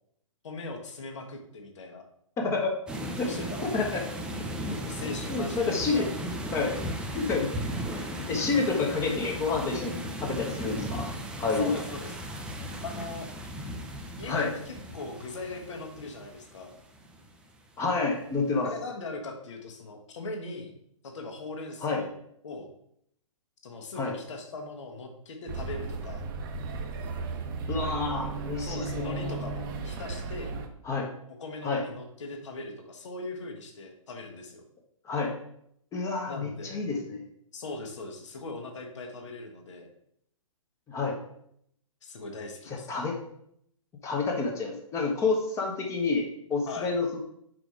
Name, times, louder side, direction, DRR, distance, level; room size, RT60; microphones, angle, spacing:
voice 1, 0.4-2.0 3.2-3.9 4.8-6.1 11.6-12.1 12.8-13.3 14.2-16.7 18.6-20.7 21.0-22.1 22.4-22.7 23.6-26.2 28.6-30.6 31.4-34.6 36.3-36.8 37.5-39.9 42.0-42.9 46.7-46.9, left 3 dB, 60° left, 3 dB, 1.4 m, -40 dB
voice 2, 2.4-2.7 3.2-3.4 3.6-4.0 4.7-4.8 5.3-6.8 7.1-7.5 7.9-9.9 10.2-11.1 11.4-11.8 14.3-14.5 17.8-18.7 21.8-22.0 24.0-24.1 27.7-29.4 30.8-31.1 31.6-31.8 35.0-35.3 35.9-37.2 40.9-41.2 42.7-43.2 44.0-47.2, left 4 dB, 15° left, 1 dB, 1.0 m, -29 dB
sound 1, 2.9-17.4, equal, 5° right, 0.5 m, -36 dB
sound 2, 25.5-30.7, right 4 dB, 35° right, 0.8 m, -35 dB
5.1 x 4.8 x 4.8 m, 0.72 s
figure-of-eight pair, 125°, 18 cm